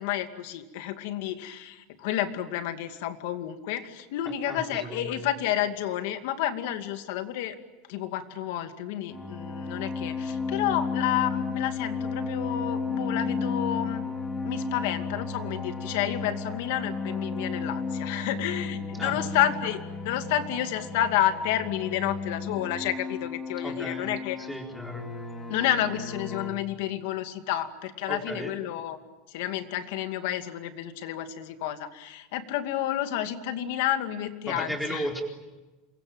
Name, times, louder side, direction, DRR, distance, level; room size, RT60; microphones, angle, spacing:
voice 1, 0.0-7.6 7.9-14.1 14.4-24.4 25.5-29.0 29.3-35.1, left 11 dB, 65° left, 8 dB, 2.4 m, -30 dB
voice 2, 4.5-5.3 19.0-19.1 23.6-24.1 24.4-25.1 28.1-28.6 34.5-35.2, equal, ahead, 1 dB, 4.1 m, -35 dB
sound 1, 9.1-26.5, left 4 dB, 15° left, 3.0 m, -33 dB
28.0 x 23.0 x 8.9 m, 1.1 s
supercardioid pair, 170°, 0 cm